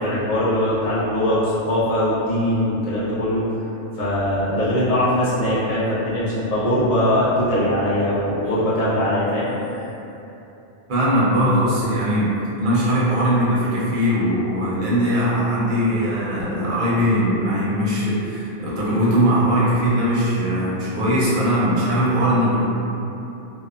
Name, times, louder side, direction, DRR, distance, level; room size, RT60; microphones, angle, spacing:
voice 1, 0.0-3.5 4.0-9.8, left 1 dB, 40° left, -11 dB, 0.6 m, -21 dB
voice 2, 10.9-22.7, equal, 50° right, -8 dB, 0.7 m, -20 dB
2.7 x 2.1 x 2.4 m, 2.9 s
omnidirectional pair, 1.2 m